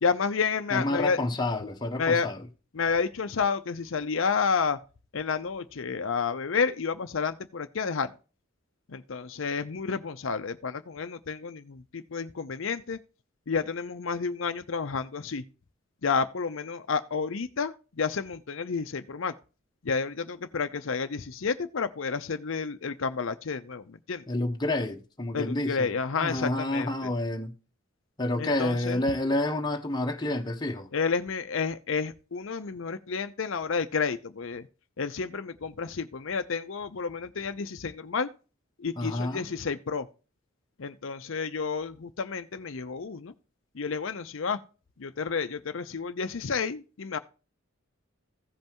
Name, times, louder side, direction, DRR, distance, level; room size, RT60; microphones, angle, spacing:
voice 1, 0.0-1.2 2.0-2.3 2.7-4.8 5.1-8.1 8.9-13.0 13.5-15.4 16.0-19.3 19.8-24.2 25.3-27.1 28.4-29.0 30.9-34.7 35.0-38.3 38.8-40.1 40.8-43.3 43.7-44.6 45.0-47.2, left 5 dB, 65° left, 0.6 m, -30 dB
voice 2, 0.7-2.4 24.3-25.9 26.2-27.5 28.2-30.9 39.0-39.5, left 1 dB, 20° left, 1.0 m, -29 dB
16.0 x 5.4 x 2.9 m
head